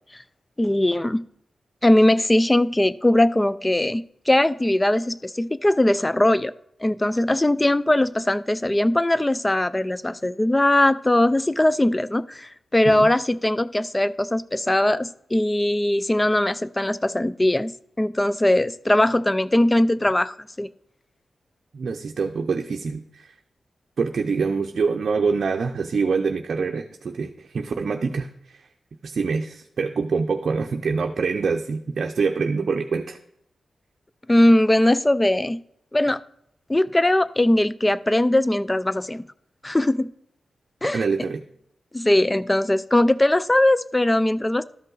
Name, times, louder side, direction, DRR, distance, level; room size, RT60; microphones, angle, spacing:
voice 1, 0.6-1.2 1.8-6.5 6.8-17.7 18.0-20.7 34.3-35.6 35.9-36.2 36.7-39.2 39.6-40.1 40.8-41.0 41.9-44.6, left 1 dB, 20° left, 17 dB, 0.4 m, -20 dB
voice 2, 21.7-23.4 24.0-28.7 29.0-33.2 40.9-41.4, right 5 dB, 70° right, 4 dB, 0.6 m, -25 dB
12.5 x 5.4 x 3.9 m, 0.73 s
cardioid pair, 55°, 0 cm